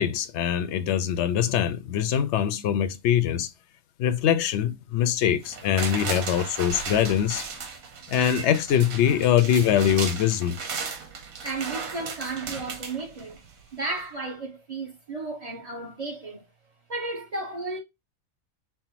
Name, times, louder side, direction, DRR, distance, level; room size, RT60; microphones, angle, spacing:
voice 1, 0.0-3.5 4.0-7.4 8.1-10.5, left 9 dB, 65° left, 0.8 m, -23 dB
sound 1, 5.4-13.6 14.0-14.1, right 5 dB, 80° right, 1.3 m, -35 dB
voice 2, 11.4-13.4 13.7-16.4 16.9-17.8, right 3 dB, 30° right, 1.1 m, -33 dB
5.6 x 2.1 x 2.8 m
omnidirectional pair, 1.4 m